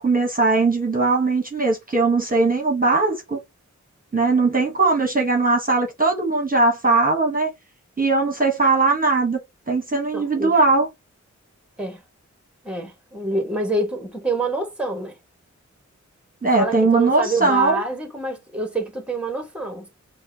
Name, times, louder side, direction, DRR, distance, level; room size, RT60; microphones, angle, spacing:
voice 1, 0.0-3.4 4.1-7.5 8.0-9.4 9.7-10.9 16.4-17.8, right 3 dB, 30° right, 1.1 m, -19 dB
voice 2, 10.1-10.5 11.8-12.0 12.6-15.2 16.6-19.9, right 2 dB, 5° right, 1.2 m, -26 dB
5.3 x 2.3 x 2.7 m
wide cardioid pair, 70°, 30 cm